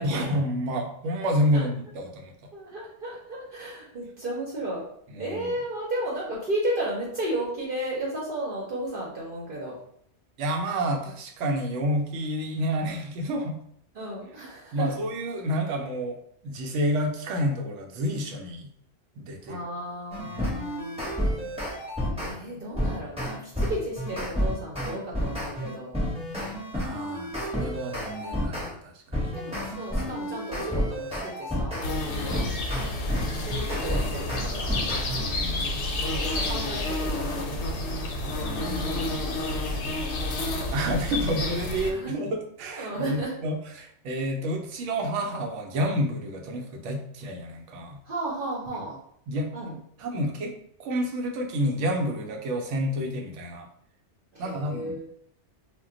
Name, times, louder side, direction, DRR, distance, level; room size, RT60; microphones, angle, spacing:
voice 1, 0.0-2.3 5.1-5.5 10.4-13.6 14.7-16.2 16.4-18.7 19.2-19.6 20.2-20.7 21.3-21.7 26.7-29.3 32.1-32.6 35.1-35.7 38.4-39.1 40.7-48.0 49.3-49.5 50.0-53.7 54.4-55.0, equal, 85° right, 3 dB, 0.9 m, -29 dB
voice 2, 2.5-4.8 5.2-9.7 13.9-14.9 19.5-21.3 22.2-26.0 29.3-31.8 33.4-34.7 36.0-37.9 38.2-38.4 41.8-42.1 42.7-43.3 48.0-49.0 49.5-49.8 54.3-55.0, right 1 dB, 55° right, -4 dB, 0.8 m, -33 dB
sound 1, 20.1-22.3 22.8-28.7 29.1-31.9 32.3-35.3, equal, 5° right, 0.8 m, -30 dB
sound 2, 31.8-41.9, left 2 dB, 70° left, 0.9 m, -29 dB
2.2 x 2.2 x 3.6 m, 0.68 s
omnidirectional pair, 1.2 m